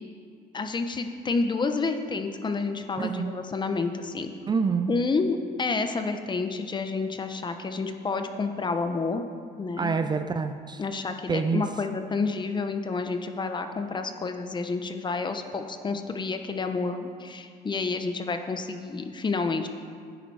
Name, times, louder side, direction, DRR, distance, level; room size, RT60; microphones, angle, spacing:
voice 1, 0.5-4.3 4.9-9.2 9.6-10.1 10.8-19.7, left 4 dB, 25° left, 7 dB, 0.9 m, -29 dB
voice 2, 3.0-3.3 4.5-4.9 9.8-10.8 11.3-11.6, right 5 dB, 25° right, 8 dB, 0.5 m, -27 dB
11.5 x 10.0 x 4.8 m, 2.1 s
cardioid pair, 110°, 17 cm